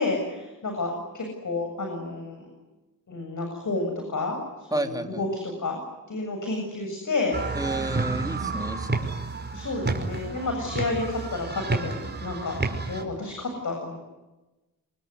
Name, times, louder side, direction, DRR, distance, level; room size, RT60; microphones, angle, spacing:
voice 1, 0.0-2.5 3.1-5.8 6.1-7.4 9.5-12.6 12.9-14.1, left 3 dB, 60° left, 3 dB, 7.7 m, -30 dB
voice 2, 4.7-5.2 7.5-9.0, right 1 dB, 10° right, 4 dB, 3.1 m, -31 dB
sound 1, 7.3-13.0, right 3 dB, 30° right, 5.3 m, -30 dB
27.0 x 23.0 x 9.7 m, 1.1 s
cardioid pair, 70°, 34 cm